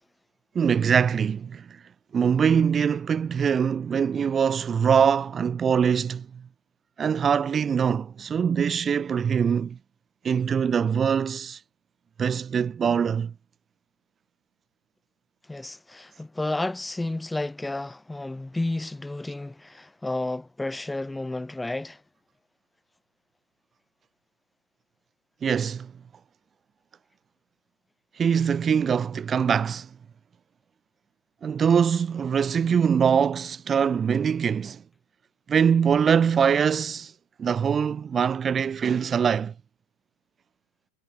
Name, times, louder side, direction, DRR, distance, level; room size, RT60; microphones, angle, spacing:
voice 1, 0.5-1.8 2.1-6.4 7.0-9.8 10.2-11.6 12.2-13.3 25.4-25.9 28.2-29.9 31.4-34.8 35.5-37.1 37.4-39.5, right 7 dB, 20° right, 2.4 m, -23 dB
voice 2, 15.5-22.0, left 2 dB, 5° left, 6.5 m, -31 dB
figure-of-eight pair, 90°, 0 cm